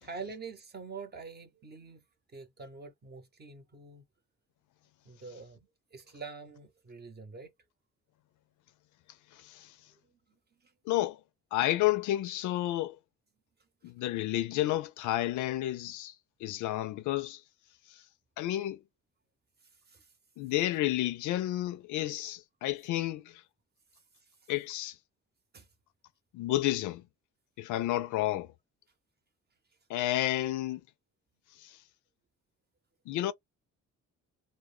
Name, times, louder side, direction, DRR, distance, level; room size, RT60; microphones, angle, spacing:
voice 1, 0.0-2.0 2.3-4.0 5.0-7.5 10.0-10.2 10.5-10.7 19.7-20.1 24.2-24.5 25.5-25.7, right 4 dB, 35° right, 0.8 m, -46 dB
voice 2, 10.9-11.2 11.5-13.0 13.8-16.1 16.4-17.4 18.4-18.8 20.4-23.4 24.5-25.0 26.3-27.0 27.6-28.5 29.9-30.8 31.6-31.7 33.1-33.3, left 14 dB, 80° left, 0.4 m, -31 dB
2.2 x 2.1 x 3.2 m
cardioid pair, 90°, 30 cm